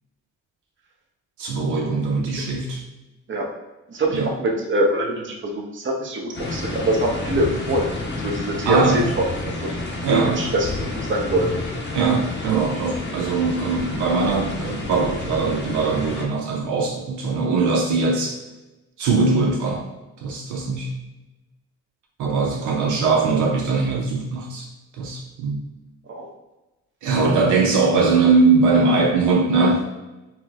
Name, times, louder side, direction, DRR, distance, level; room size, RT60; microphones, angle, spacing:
voice 1, 1.4-2.8 4.1-4.3 8.7-9.1 10.0-10.4 11.9-18.4 19.0-19.8 20.2-21.0 22.2-24.7 25.0-25.7 27.0-29.9, right 4 dB, 80° right, 0 dB, 0.5 m, -21 dB
voice 2, 3.9-7.9 8.2-9.0 9.6-9.7 10.1-11.5 26.1-26.3, right 1 dB, 40° right, 0 dB, 0.8 m, -23 dB
sound 1, 6.3-16.2, left 2 dB, 35° left, 0.7 m, -30 dB
4.2 x 2.0 x 2.4 m, 1.1 s
cardioid pair, 90°, 30 cm